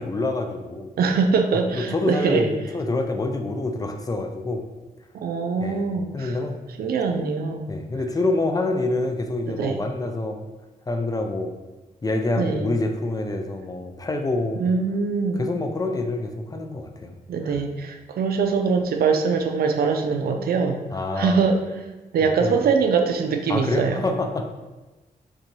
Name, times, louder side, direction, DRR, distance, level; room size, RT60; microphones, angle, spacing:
voice 1, 0.0-0.9 1.7-4.7 5.6-6.6 7.7-10.4 10.9-11.5 12.0-14.6 15.4-17.1 17.4-17.6 20.9-21.4 22.2-22.6 23.5-24.4, left 2 dB, 20° left, 4 dB, 0.4 m, -26 dB
voice 2, 1.0-2.5 5.1-6.4 6.8-7.7 9.5-9.8 12.4-12.7 14.6-15.4 17.3-20.8 21.2-21.6 22.1-24.0, right 5 dB, 70° right, 5 dB, 0.4 m, -23 dB
3.8 x 2.3 x 3.0 m, 1.1 s
cardioid pair, 70°, 16 cm